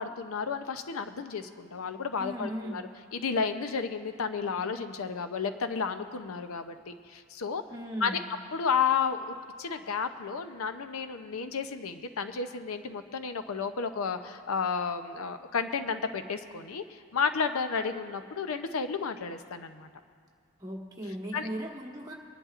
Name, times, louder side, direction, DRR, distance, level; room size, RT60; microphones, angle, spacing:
voice 1, 0.0-2.8 3.1-7.6 8.0-8.2 8.5-19.9 21.3-21.5, left 5 dB, 90° left, 9 dB, 0.6 m, -32 dB
voice 2, 2.2-2.9 7.7-8.3 20.6-22.1, equal, 20° right, -1 dB, 1.3 m, -37 dB
23.5 x 11.0 x 2.5 m, 2.1 s
head